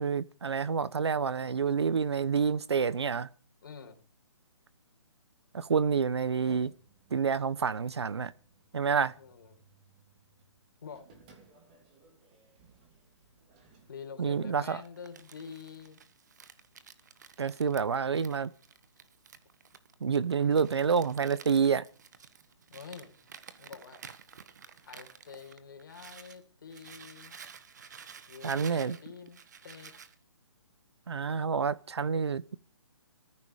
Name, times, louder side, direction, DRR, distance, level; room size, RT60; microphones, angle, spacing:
voice 1, 0.0-3.3 5.5-6.7 7.1-8.3 8.7-9.1 14.2-14.8 17.4-18.5 20.0-21.9 28.4-29.0 31.1-32.6, right 6 dB, 65° right, 1.1 m, -28 dB
voice 2, 3.6-4.0 9.2-9.6 10.8-11.1 13.9-16.0 22.7-23.1 23.6-24.0 24.8-27.3 28.3-29.9, left 6 dB, 45° left, 4.3 m, -47 dB
sound 1, 4.6-13.9, right 5 dB, 20° right, 3.1 m, -61 dB
Crumpling crinkling, 14.8-26.4 26.7-30.1, right 7 dB, 40° right, 1.5 m, -51 dB
20.0 x 14.5 x 4.9 m
hypercardioid pair, 175°, 15 cm